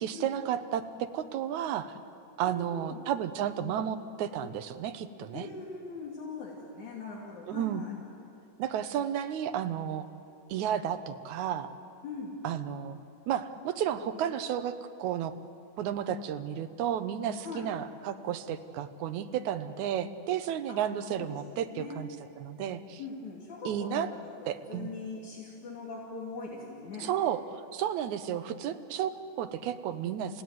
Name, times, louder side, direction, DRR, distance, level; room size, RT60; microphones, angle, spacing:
voice 1, 0.0-1.9 2.4-5.5 7.5-7.8 8.6-10.1 10.5-11.7 12.4-13.0 13.3-15.3 15.8-22.1 22.4-23.0 23.6-24.1 24.5-24.9 27.0-27.4 27.7-30.4, right 9 dB, 70° right, 9 dB, 2.3 m, -32 dB
voice 2, 2.5-3.0 5.3-8.0 12.0-12.4 17.4-17.7 21.2-22.0 23.0-23.9 24.2-24.3 24.7-27.1, left 4 dB, 65° left, -4 dB, 4.0 m, -41 dB
30.0 x 17.0 x 9.5 m, 2.7 s
omnidirectional pair, 3.7 m